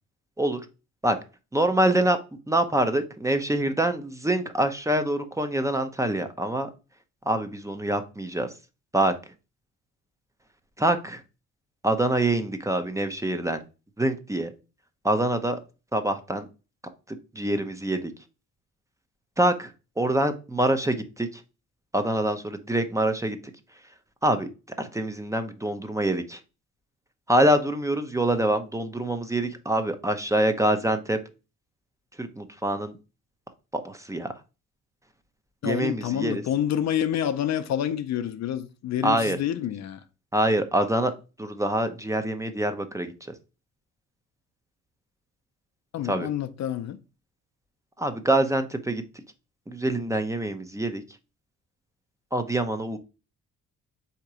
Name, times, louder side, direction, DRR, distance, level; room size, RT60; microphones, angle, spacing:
voice 1, 1.5-2.2 2.5-6.7 7.3-8.5 8.9-9.1 10.8-11.2 11.8-13.6 14.0-14.5 15.0-15.6 15.9-16.5 17.4-18.1 19.4-19.7 20.0-21.3 21.9-23.4 24.2-24.5 24.8-26.4 27.3-31.2 32.2-33.0 33.8-34.3 35.6-36.4 39.0-39.4 40.3-41.1 41.4-43.1 46.0-46.3 48.0-49.0 49.7-51.0 52.3-53.0, right 1 dB, 10° right, 0.6 m, -25 dB
voice 2, 35.6-40.0 45.9-47.0, left 10 dB, 60° left, 0.6 m, -28 dB
3.8 x 2.9 x 4.7 m
cardioid pair, 90°, 30 cm